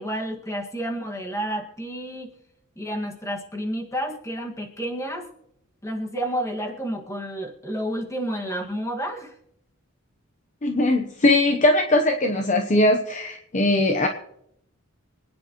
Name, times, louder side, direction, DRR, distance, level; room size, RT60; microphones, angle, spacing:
voice 1, 0.0-2.3 2.8-5.3 5.8-9.3, equal, 15° left, 1 dB, 1.8 m, -30 dB
voice 2, 10.6-14.1, left 1 dB, 35° left, 4 dB, 0.9 m, -20 dB
25.5 x 9.9 x 3.1 m, 0.75 s
head